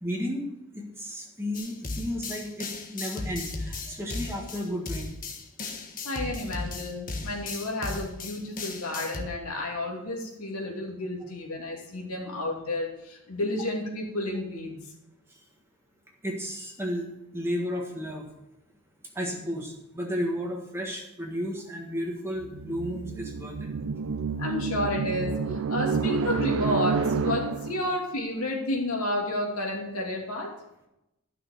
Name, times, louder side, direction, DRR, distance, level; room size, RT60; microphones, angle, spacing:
voice 1, 0.0-0.5 0.7-5.1 16.2-17.0 17.3-18.3 19.1-23.7, equal, 10° right, -1 dB, 1.5 m, -33 dB
sound 1, 1.5-9.2, left 3 dB, 40° left, 1.4 m, -36 dB
voice 2, 6.0-14.7 24.4-30.5, left 1 dB, 75° left, -1 dB, 2.8 m, -31 dB
sound 2, 22.4-27.9, right 5 dB, 65° right, 0.5 m, -29 dB
12.0 x 6.3 x 6.6 m, 0.88 s
head